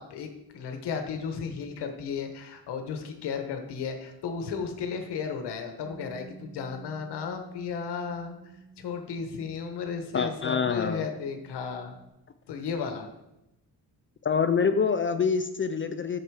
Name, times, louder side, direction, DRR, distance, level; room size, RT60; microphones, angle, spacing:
voice 1, 0.0-8.4 8.8-12.0 12.5-13.1, left 6 dB, 90° left, 5 dB, 1.1 m, -34 dB
Bass guitar, 5.8-12.1, right 4 dB, 40° right, 1.3 m, -52 dB
voice 2, 10.1-11.1 14.2-16.2, left 6 dB, 30° left, 9 dB, 0.4 m, -26 dB
8.0 x 6.9 x 4.7 m, 0.91 s
cardioid pair, 110°, 39 cm